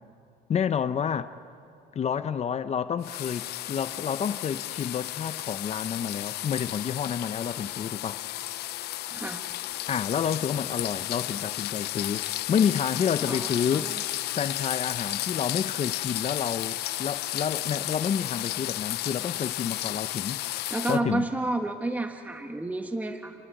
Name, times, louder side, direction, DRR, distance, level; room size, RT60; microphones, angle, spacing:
voice 1, 0.5-1.3 1.9-8.4 9.9-13.9 14.3-20.6 20.9-21.2, left 7 dB, 40° left, 0.7 m, -29 dB
sound 1, 3.0-21.0, left 15 dB, 75° left, 0.7 m, -33 dB
voice 2, 9.1-9.4 13.3-13.9 20.7-23.3, right 2 dB, 10° right, 1.4 m, -30 dB
28.5 x 21.5 x 9.3 m
cardioid pair, 110°, 17 cm